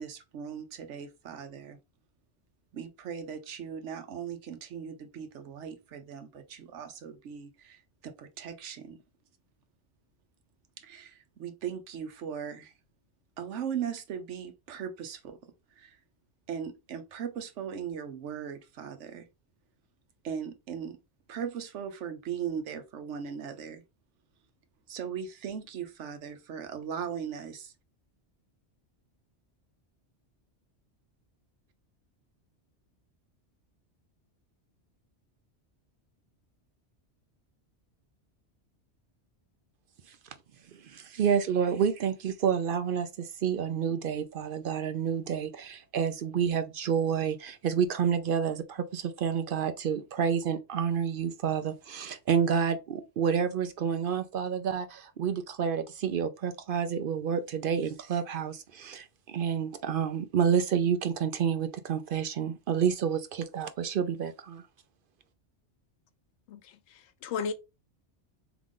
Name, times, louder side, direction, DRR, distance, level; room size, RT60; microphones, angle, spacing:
voice 1, 0.0-1.8 2.7-9.0 10.8-12.7 13.4-15.4 15.7-16.0 16.5-19.3 20.2-21.0 21.3-23.8 24.9-27.7, right 7 dB, 85° right, 1.1 m, -38 dB
voice 2, 40.7-64.6, right 7 dB, 60° right, 0.6 m, -29 dB
voice 3, 66.5-67.5, left 5 dB, 80° left, 0.9 m, -35 dB
3.7 x 2.9 x 3.6 m
omnidirectional pair, 1.2 m